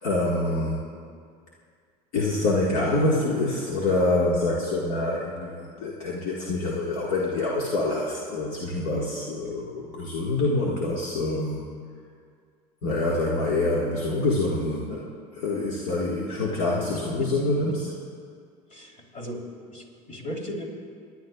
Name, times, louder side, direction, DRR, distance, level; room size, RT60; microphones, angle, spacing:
voice 1, 0.0-0.9 2.1-11.6 12.8-15.0 15.4-17.9, left 2 dB, 70° left, -5 dB, 1.7 m, -26 dB
voice 2, 10.4-10.7 16.9-17.8 18.7-19.4 19.7-20.6, equal, 45° left, 0 dB, 3.4 m, -37 dB
29.0 x 10.5 x 2.4 m, 2.1 s
supercardioid pair, 90°, 18 cm